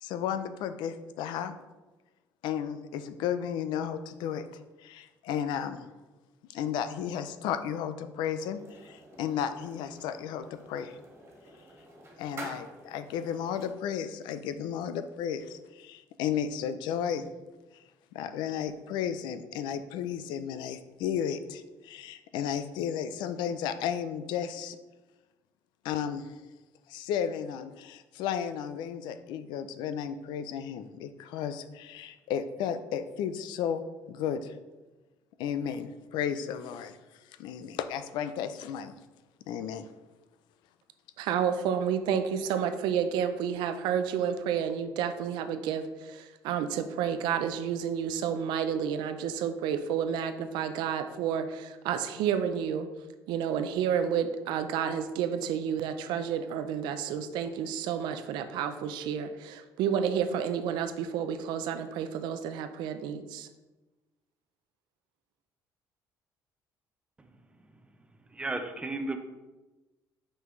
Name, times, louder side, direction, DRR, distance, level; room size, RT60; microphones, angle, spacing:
voice 1, 0.0-1.5 2.4-4.5 4.8-5.9 6.5-11.0 12.2-17.3 17.7-17.8 18.1-24.8 25.8-26.3 26.9-33.8 34.1-34.6 35.4-37.0 37.3-38.9 39.5-39.9, left 8 dB, 85° left, 11 dB, 0.5 m, -33 dB
sound 1, 8.5-13.7, right 2 dB, 35° right, 1.8 m, -48 dB
voice 2, 41.2-52.9 53.3-63.5, right 8 dB, 90° right, 9 dB, 0.5 m, -30 dB
voice 3, 68.4-69.2, right 2 dB, 15° right, 6 dB, 0.6 m, -33 dB
5.8 x 5.5 x 3.2 m, 1.1 s
cardioid pair, 115°, 7 cm